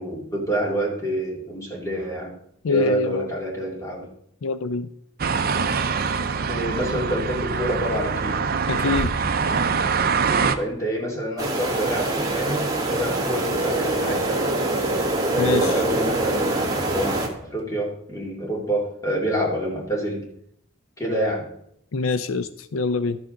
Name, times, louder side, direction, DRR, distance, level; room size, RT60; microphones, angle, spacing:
voice 1, 0.0-2.3 2.7-4.1 6.5-8.4 10.6-14.5 15.3-20.3 21.0-21.5, right 1 dB, 15° left, -2 dB, 2.4 m, -27 dB
voice 2, 2.6-3.3 4.4-4.9 8.7-9.1 15.4-15.7 21.9-23.2, left 4 dB, 85° left, 12 dB, 0.5 m, -24 dB
sound 1, 5.2-10.5, right 5 dB, 45° right, 0.6 m, -24 dB
sound 2, 11.4-17.3, right 2 dB, 20° right, 1.4 m, -24 dB
13.0 x 6.9 x 3.8 m, 0.71 s
head